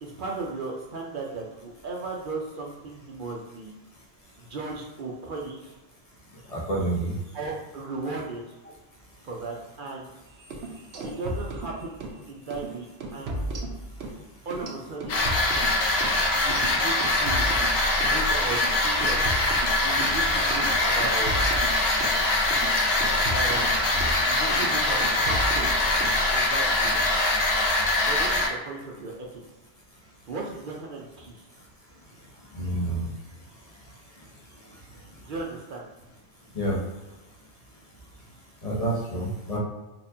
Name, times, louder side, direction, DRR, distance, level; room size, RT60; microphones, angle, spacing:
voice 1, 0.0-3.7 4.4-5.8 7.3-8.6 9.2-10.1 11.0-12.0 12.3-13.4 14.5-15.3 16.3-17.6 17.9-19.2 19.8-21.5 23.3-23.9 24.3-25.9 26.3-26.9 28.1-29.4 30.3-31.5 35.3-35.9, right 3 dB, 60° right, -1 dB, 0.7 m, -36 dB
voice 2, 6.5-7.1 32.5-33.0 36.5-36.8 38.6-39.6, right 1 dB, 40° left, -4 dB, 0.8 m, -28 dB
sound 1, 10.4-12.2 12.5-12.7 13.0-14.2 14.5-18.2 18.5-18.7 19.0-20.2 20.5-20.7 21.0-24.2 24.5-24.7 25.0-26.2, right 1 dB, 85° right, 0.9 m, -34 dB
sound 2, 15.1-28.5, left 2 dB, 75° left, 0.9 m, -23 dB
4.2 x 2.4 x 2.6 m, 1.1 s
omnidirectional pair, 1.1 m